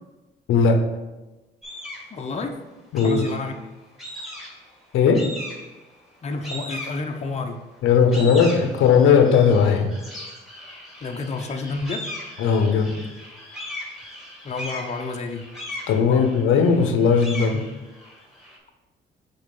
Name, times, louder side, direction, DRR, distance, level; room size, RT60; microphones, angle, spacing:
voice 1, 0.5-0.9 2.9-3.2 4.9-5.3 7.8-9.9 12.4-13.0 15.9-17.7, left 6 dB, 80° left, 6 dB, 0.7 m, -18 dB
sound 1, 1.6-2.1 2.9-3.6 4.0-4.7 5.1-5.8 6.4-7.4 7.8-18.6, left 1 dB, ahead, 2.0 m, -38 dB
voice 2, 2.1-2.6 3.0-3.5 4.1-4.2 6.2-7.6 11.0-12.0 14.4-15.4 16.1-16.3, left 3 dB, 35° left, 4 dB, 0.6 m, -30 dB
6.6 x 4.0 x 3.7 m, 1.1 s
cardioid pair, 90°, 20 cm